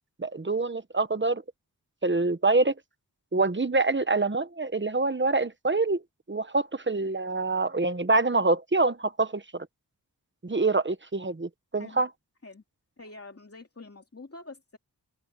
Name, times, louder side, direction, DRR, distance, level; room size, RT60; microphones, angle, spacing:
voice 1, 0.2-1.4 2.0-2.7 3.3-6.0 6.3-9.7 10.4-12.1, right 3 dB, 30° right, 1.2 m, -25 dB
voice 2, 13.0-14.8, left 3 dB, 40° left, 2.8 m, -46 dB
open air
wide cardioid pair, 80°, 38 cm